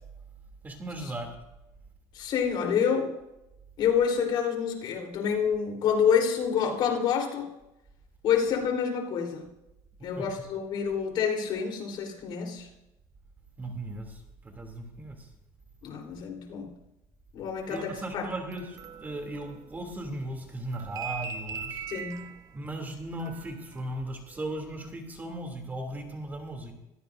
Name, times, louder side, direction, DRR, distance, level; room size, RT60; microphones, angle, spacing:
voice 1, 0.6-1.3 10.2-10.3 13.6-15.2 17.7-21.8 22.5-26.7, right 1 dB, 20° right, 3 dB, 2.9 m, -37 dB
voice 2, 2.1-3.1 3.8-7.5 8.2-9.5 10.0-12.7 15.8-16.7 17.3-18.3 21.9-22.3, left 7 dB, 55° left, 2 dB, 3.7 m, -27 dB
sound 1, 17.7-20.1 20.4-24.0 24.4-24.6, right 6 dB, 40° right, 1.1 m, -41 dB
25.5 x 16.0 x 2.6 m, 0.90 s
cardioid pair, 140°, 9 cm